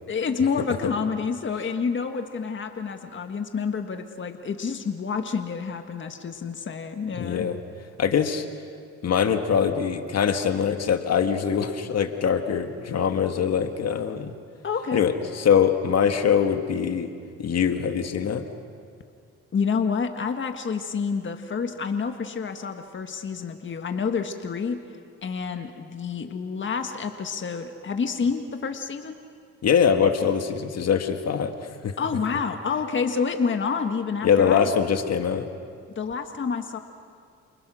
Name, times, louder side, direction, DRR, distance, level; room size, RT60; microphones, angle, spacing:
voice 1, 0.1-7.5 14.6-15.0 19.5-24.8 25.2-29.2 32.0-34.7 35.9-36.8, left 5 dB, 40° left, 6 dB, 1.7 m, -28 dB
voice 2, 7.1-7.6 8.0-8.5 9.0-14.3 14.9-17.1 17.4-18.4 29.6-31.9 34.2-35.5, left 7 dB, 55° left, 6 dB, 1.8 m, -23 dB
29.5 x 29.0 x 6.3 m, 2.2 s
cardioid pair, 90°, 30 cm